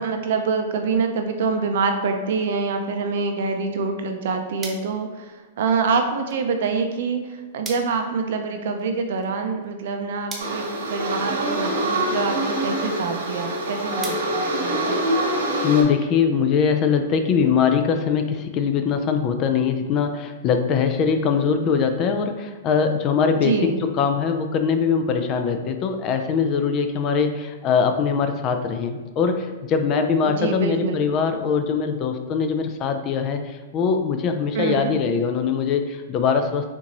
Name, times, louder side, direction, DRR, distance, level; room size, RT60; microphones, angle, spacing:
voice 1, 0.0-15.0 23.4-23.9 30.3-31.0 34.5-34.9, right 4 dB, 65° right, 5 dB, 0.6 m, -26 dB
sound 1, 4.0-15.3, right 3 dB, 15° right, 0.7 m, -44 dB
sound 2, 10.4-15.8, right 1 dB, 85° right, 1.2 m, -25 dB
voice 2, 15.6-36.7, left 6 dB, 35° left, 6 dB, 0.4 m, -22 dB
4.2 x 2.7 x 2.9 m, 1.3 s
hypercardioid pair, 135°, 0 cm